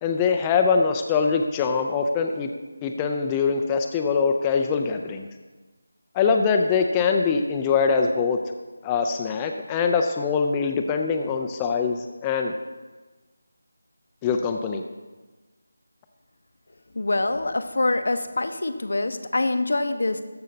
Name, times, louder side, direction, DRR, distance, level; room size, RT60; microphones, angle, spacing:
voice 1, 0.0-2.5 2.8-5.3 6.1-8.4 8.8-12.5 14.2-14.8, left 5 dB, 15° left, 4 dB, 0.4 m, -23 dB
voice 2, 16.9-20.2, left 2 dB, 70° left, 8 dB, 0.8 m, -25 dB
13.5 x 5.6 x 4.0 m, 1.3 s
figure-of-eight pair, 165°, 0 cm